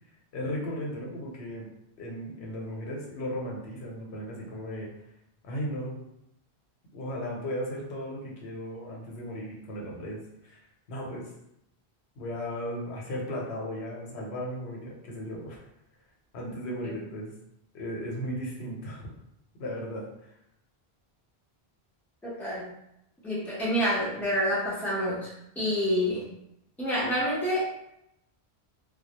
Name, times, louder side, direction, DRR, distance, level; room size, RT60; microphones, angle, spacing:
voice 1, 0.3-1.7 2.0-4.9 5.4-6.0 6.9-10.6 10.9-11.3 12.2-15.7 16.3-17.3 17.7-19.1 19.6-20.0, equal, 85° left, -2 dB, 0.9 m, -36 dB
voice 2, 22.2-22.7 23.2-25.3 25.6-26.3 26.8-27.7, equal, ahead, -8 dB, 0.6 m, -28 dB
2.2 x 2.1 x 2.8 m, 0.80 s
omnidirectional pair, 1.1 m